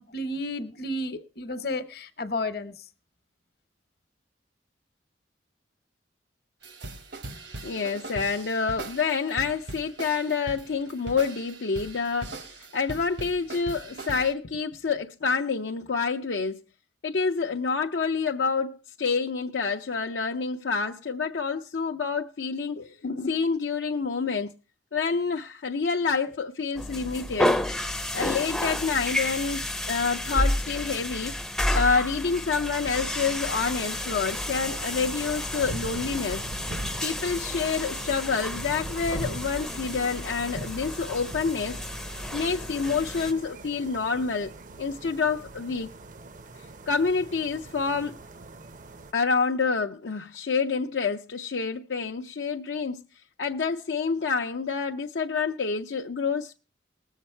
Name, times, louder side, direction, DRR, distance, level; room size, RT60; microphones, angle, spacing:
voice 1, 0.0-2.7, left 1 dB, 55° left, 0.9 m, -32 dB
sound 1, 6.6-14.3, right 2 dB, 75° right, 1.3 m, -41 dB
voice 2, 7.6-16.6 17.0-24.5 24.9-27.6 28.1-31.4 31.7-36.5 37.0-41.8 42.3-44.5 44.8-45.9 46.9-48.2 49.1-53.0 53.4-56.6, left 5 dB, 75° left, 0.6 m, -28 dB
sound 2, 26.8-43.3, left 1 dB, 5° left, 0.5 m, -31 dB
sound 3, 32.8-49.1, right 2 dB, 45° right, 0.6 m, -41 dB
19.5 x 7.4 x 4.4 m
head